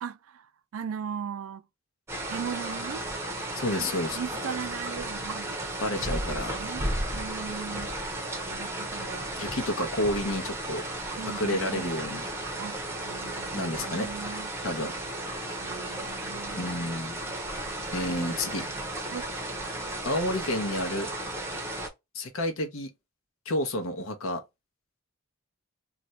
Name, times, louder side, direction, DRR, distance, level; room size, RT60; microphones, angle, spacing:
voice 1, 0.0-1.6 2.3-3.1 3.8-3.9 4.2-5.6 6.0-6.9 7.1-7.9 8.5-9.4 11.2-11.9 12.6-12.8 13.1-14.5 15.6-16.9 17.9-18.8 19.1-19.3, right 7 dB, 75° right, 0.3 m, -38 dB
sound 1, 2.1-21.9, right 1 dB, 10° right, 0.6 m, -34 dB
voice 2, 3.5-4.2 5.8-6.5 9.4-10.8 11.2-12.2 13.5-14.1 14.6-14.9 16.5-17.2 17.9-18.7 20.0-21.1 22.1-22.9 23.5-24.4, left 1 dB, 70° left, 0.8 m, -30 dB
2.5 x 2.2 x 4.0 m
head